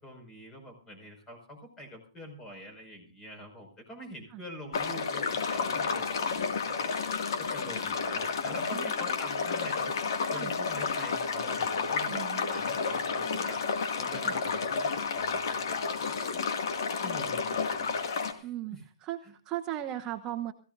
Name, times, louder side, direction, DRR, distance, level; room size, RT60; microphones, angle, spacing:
voice 1, 0.0-7.0 7.4-9.9 10.3-13.6 14.0-16.2 17.0-18.8 19.2-19.3, equal, 15° left, 5 dB, 5.6 m, -45 dB
sound 1, 4.7-18.3, left 5 dB, 65° left, 2.2 m, -31 dB
voice 2, 8.7-9.1 10.3-10.5 12.1-12.5 14.2-14.3 18.4-20.5, right 13 dB, 25° right, 7 dB, 0.9 m, -37 dB
22.5 x 15.5 x 2.6 m, 0.38 s
hypercardioid pair, 130°, 2 cm